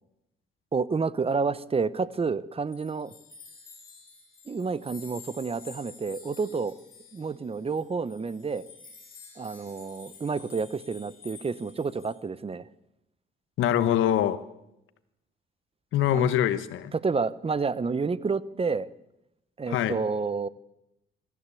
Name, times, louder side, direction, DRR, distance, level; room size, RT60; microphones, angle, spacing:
voice 1, 0.7-3.1 4.5-6.7 7.1-8.6 9.4-12.6 16.1-16.3 16.9-18.9 19.6-20.5, right 4 dB, 30° right, 17 dB, 1.0 m, -29 dB
sound 1, 2.7-12.2, left 4 dB, 45° left, 7.2 m, -50 dB
voice 2, 13.6-14.4 15.9-16.9 19.7-20.0, left 10 dB, 85° left, 13 dB, 1.4 m, -24 dB
24.0 x 14.5 x 8.4 m, 0.88 s
cardioid pair, 90°, 20 cm